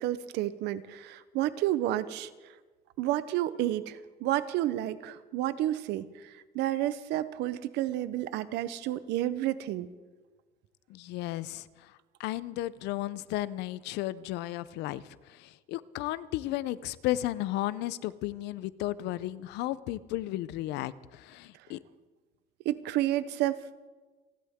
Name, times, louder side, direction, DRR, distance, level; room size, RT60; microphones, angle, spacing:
voice 1, 0.0-2.3 3.0-9.9 22.6-23.9, right 13 dB, 90° right, 14 dB, 0.9 m, -31 dB
voice 2, 10.9-21.8, left 15 dB, 90° left, 17 dB, 0.6 m, -34 dB
30.0 x 11.5 x 3.7 m, 1.3 s
cardioid pair, 110°, 17 cm